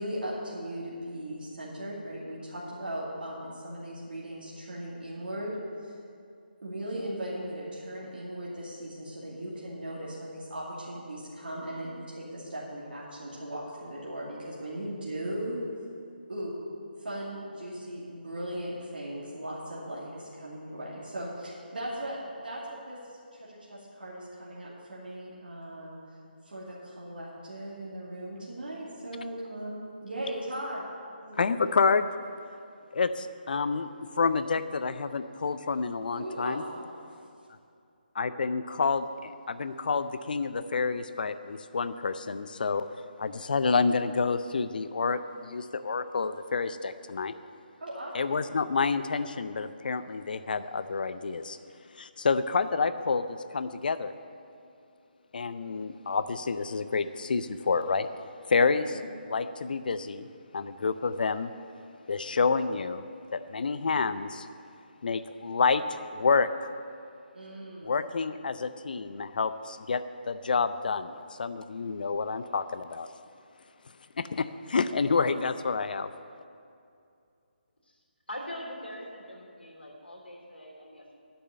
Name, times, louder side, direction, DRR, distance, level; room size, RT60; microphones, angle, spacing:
voice 1, 0.0-5.5 5.8-5.9 6.6-15.6 16.3-16.5 17.0-26.0 26.4-30.8 31.2-31.4 36.1-36.9 47.8-48.1 58.8-59.0 67.3-67.9, right 1 dB, 65° right, -7 dB, 2.5 m, -38 dB
voice 2, 31.4-32.1 32.9-33.9 34.2-36.6 38.1-42.8 43.2-47.3 48.1-51.6 51.9-54.1 55.3-58.1 58.5-59.0 59.3-60.3 60.5-61.5 62.1-63.0 63.3-64.5 65.0-66.7 67.8-73.1 74.2-76.1, left 4 dB, 55° left, 12 dB, 0.6 m, -28 dB
voice 3, 78.3-81.2, left 1 dB, 80° left, -1 dB, 3.0 m, -42 dB
9.2 x 6.9 x 8.8 m, 2.5 s
figure-of-eight pair, 150°, 6 cm